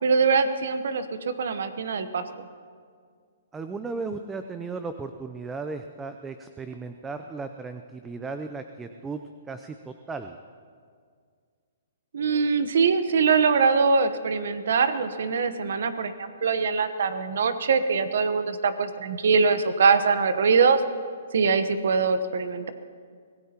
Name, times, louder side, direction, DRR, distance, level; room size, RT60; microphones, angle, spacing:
voice 1, 0.0-2.5 12.1-20.8 21.3-22.7, right 5 dB, 70° right, 10 dB, 1.0 m, -23 dB
voice 2, 3.5-9.2 9.5-10.4, right 4 dB, 10° right, 8 dB, 0.5 m, -35 dB
24.5 x 17.5 x 2.9 m, 2.1 s
hypercardioid pair, 150°, 0 cm